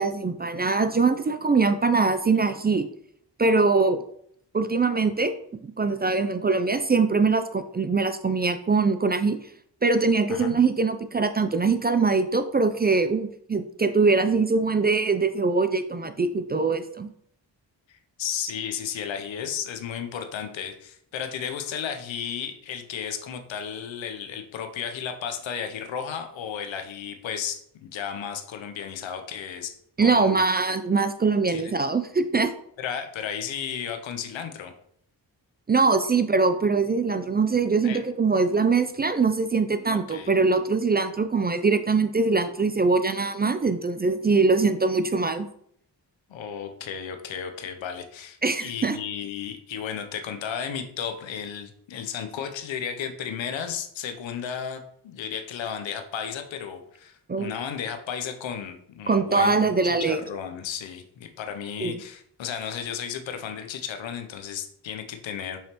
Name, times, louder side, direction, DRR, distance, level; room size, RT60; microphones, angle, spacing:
voice 1, 0.0-2.9 3.4-4.0 4.5-5.3 5.6-9.4 9.8-17.1 30.0-32.5 35.7-45.5 48.4-49.0 57.3-57.5 59.1-60.2 61.8-62.0, right 4 dB, 25° right, 10 dB, 0.3 m, -22 dB
voice 2, 17.9-29.7 30.0-30.4 31.5-31.7 32.8-34.7 37.8-38.0 39.9-40.3 46.3-65.6, left 8 dB, 80° left, 7 dB, 0.7 m, -34 dB
5.7 x 3.2 x 2.9 m, 0.67 s
cardioid pair, 40°, 45 cm